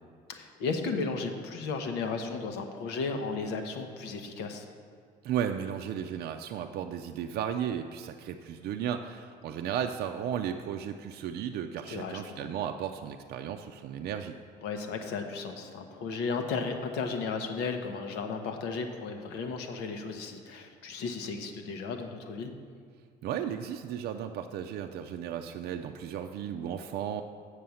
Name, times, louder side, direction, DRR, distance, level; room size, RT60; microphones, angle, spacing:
voice 1, 0.3-4.7 11.9-12.5 14.6-22.5, left 4 dB, 90° left, 5 dB, 1.0 m, -34 dB
voice 2, 5.2-14.4 23.2-27.2, right 9 dB, 70° right, 5 dB, 0.5 m, -34 dB
7.7 x 6.5 x 7.0 m, 2.1 s
cardioid pair, 110°, 17 cm